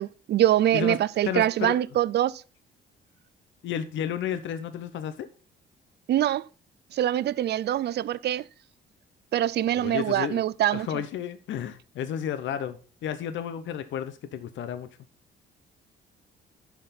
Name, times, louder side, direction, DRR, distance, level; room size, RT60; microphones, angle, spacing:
voice 1, 0.0-2.4 6.1-6.4 6.9-8.4 9.3-11.0, right 12 dB, 60° right, 0.4 m, -24 dB
voice 2, 1.2-1.8 3.6-5.3 9.7-10.4 10.7-14.9, left 9 dB, 70° left, 0.8 m, -32 dB
10.5 x 5.8 x 4.2 m
cardioid pair, 90°, 20 cm